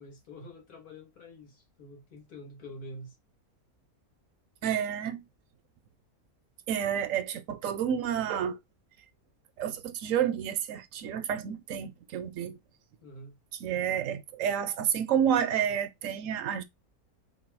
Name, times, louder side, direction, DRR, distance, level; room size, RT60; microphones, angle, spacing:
voice 1, 0.0-3.2 13.0-13.4, left 1 dB, 85° left, 2.0 m, -47 dB
voice 2, 4.6-5.2 6.7-8.6 9.6-12.6 13.6-16.6, right 9 dB, 70° right, 0.9 m, -30 dB
4.0 x 2.2 x 4.5 m
omnidirectional pair, 1.5 m